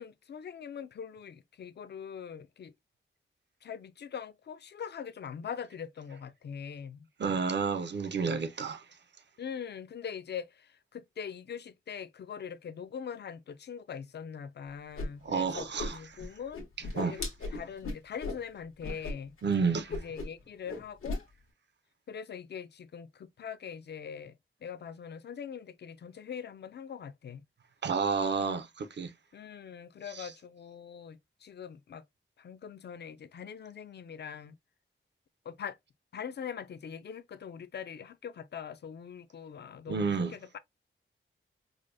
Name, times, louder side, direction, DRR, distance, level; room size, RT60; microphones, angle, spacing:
voice 1, 0.0-2.7 3.6-7.1 9.4-16.7 17.0-17.2 17.5-19.3 19.9-21.3 22.1-24.3 24.6-27.4 28.4-28.6 29.3-32.0 32.4-34.5 35.5-35.8 36.1-40.6, left 7 dB, 55° left, 0.4 m, -42 dB
voice 2, 7.2-8.8 15.2-16.2 17.0-17.2 19.4-20.0 27.8-29.1 30.1-30.3 39.9-40.3, right 5 dB, 55° right, 0.6 m, -30 dB
Whoosh swoosh swish, 15.0-15.1 15.3-16.3 16.5-18.4 18.8-19.1 19.4-19.6 19.9-20.4 20.7-21.2, left 2 dB, 90° left, 1.2 m, -36 dB
4.8 x 2.1 x 2.6 m
wide cardioid pair, 140°, 21 cm